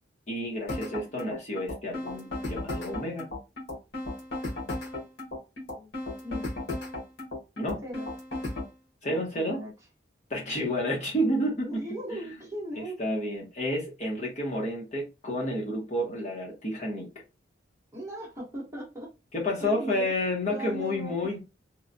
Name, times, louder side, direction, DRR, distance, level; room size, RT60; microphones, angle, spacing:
voice 1, 0.3-3.3 7.6-7.8 9.0-9.6 10.3-11.8 12.1-12.2 12.8-17.1 19.3-21.4, left 1 dB, 40° left, 0.9 m, -30 dB
sound 1, 0.7-8.7, left 2 dB, 75° left, 1.1 m, -35 dB
voice 2, 11.7-13.0 17.9-19.1 19.6-21.3, equal, 15° right, 0.9 m, -38 dB
3.0 x 2.1 x 2.5 m
head